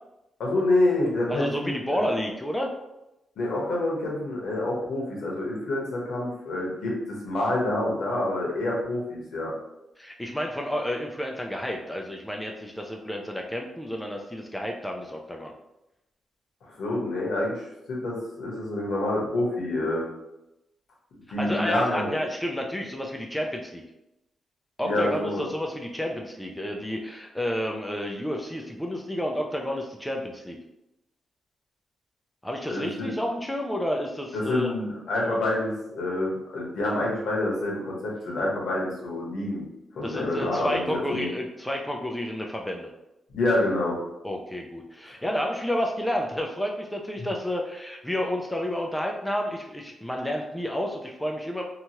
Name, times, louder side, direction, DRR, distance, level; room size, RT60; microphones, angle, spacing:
voice 1, 0.4-2.1 3.4-9.5 16.6-20.0 21.3-22.1 24.8-25.5 32.7-33.1 34.3-39.6 39.9-41.3 43.3-44.0 45.1-45.2 47.2-47.3, left 1 dB, 75° left, -3 dB, 1.0 m, -27 dB
voice 2, 1.3-2.7 10.0-15.5 21.4-23.8 24.8-30.6 32.4-34.7 35.2-35.3 40.0-42.9 44.2-51.6, equal, 5° left, 1 dB, 0.3 m, -30 dB
2.9 x 2.3 x 2.8 m, 0.90 s
cardioid pair, 120°, 0 cm